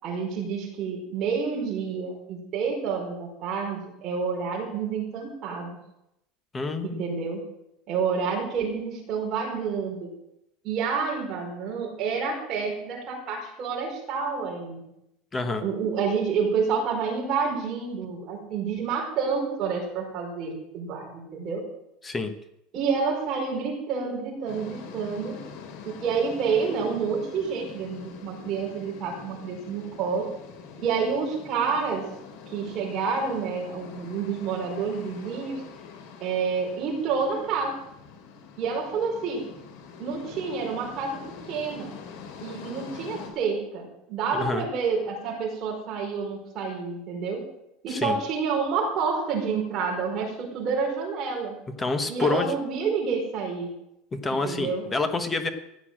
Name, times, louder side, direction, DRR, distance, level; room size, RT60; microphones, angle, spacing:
voice 1, 0.0-5.8 6.8-7.4 7.9-10.1 10.6-14.9 15.6-21.7 22.7-25.4 25.8-30.3 30.8-32.1 32.5-35.6 36.2-37.8 38.6-39.5 40.0-41.2 41.5-41.9 42.4-47.4 47.8-51.6 52.1-53.7 54.4-54.8, right 5 dB, 30° right, -2 dB, 5.0 m, -29 dB
voice 2, 6.5-7.0 15.3-15.6 22.0-22.3 44.3-44.7 47.9-48.2 51.8-52.5 54.2-55.5, left 3 dB, 15° left, 8 dB, 1.1 m, -27 dB
sound 1, 24.5-43.3, left 6 dB, 75° left, 3.3 m, -44 dB
15.0 x 8.4 x 7.4 m, 0.83 s
cardioid pair, 170°, 0 cm